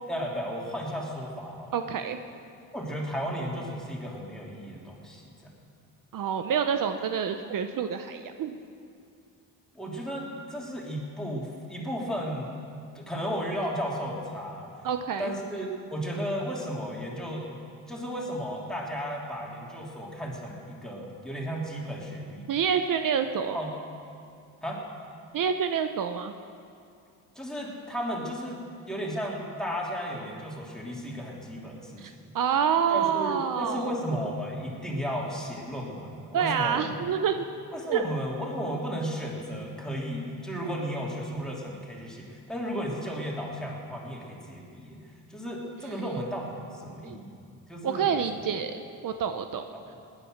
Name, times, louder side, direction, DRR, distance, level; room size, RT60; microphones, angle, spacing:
voice 1, 0.1-1.7 2.7-5.3 5.6-5.7 9.7-12.5 12.9-14.7 15.2-17.5 17.9-22.5 23.5-23.7 24.6-24.8 27.3-28.6 28.8-32.2 32.9-36.9 37.7-45.0 45.3-48.2 49.7-49.8, equal, ahead, -3 dB, 3.1 m, -34 dB
voice 2, 1.7-2.2 6.1-8.6 14.8-15.4 22.5-23.6 25.3-26.3 32.0-34.0 36.3-37.5 37.9-38.0 45.8-46.2 47.0-47.2 47.8-49.7, right 7 dB, 65° right, 8 dB, 0.8 m, -28 dB
18.5 x 9.9 x 6.5 m, 2.4 s
cardioid pair, 100°, 36 cm